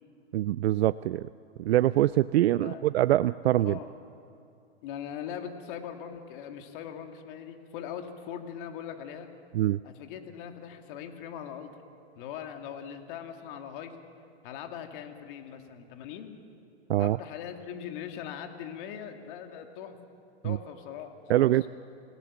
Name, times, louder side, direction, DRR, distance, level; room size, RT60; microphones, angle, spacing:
voice 1, 0.3-1.3 1.6-3.8 9.5-9.8 16.9-17.2 20.4-20.6 21.3-21.6, right 14 dB, 70° right, 16 dB, 0.5 m, -24 dB
voice 2, 2.4-2.8 3.6-3.9 4.8-9.3 9.8-11.7 12.2-14.0 14.4-16.4 17.0-20.0 20.4-21.7, left 8 dB, 50° left, 5 dB, 2.4 m, -41 dB
27.5 x 17.0 x 7.3 m, 2.7 s
hypercardioid pair, 120°, 33 cm